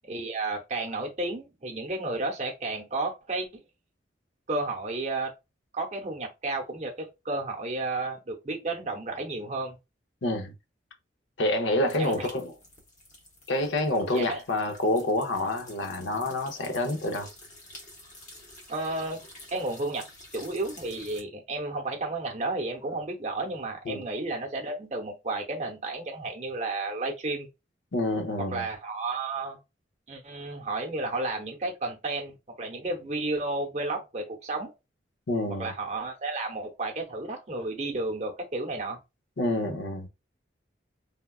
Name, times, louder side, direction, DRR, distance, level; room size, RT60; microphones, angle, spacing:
voice 1, 0.1-3.5 4.5-5.3 5.7-9.8 12.0-12.2 14.1-14.4 18.7-20.1 20.3-27.5 28.5-29.6 30.1-34.7 35.6-39.0, right 2 dB, 40° right, 0.7 m, -32 dB
voice 2, 10.2-10.5 11.4-12.5 13.5-17.3 23.9-24.1 27.9-28.7 35.3-35.7 39.4-40.1, left 1 dB, 85° left, 0.7 m, -27 dB
sound 1, 11.8-21.2, left 1 dB, 40° left, 0.9 m, -50 dB
3.5 x 2.2 x 2.3 m
head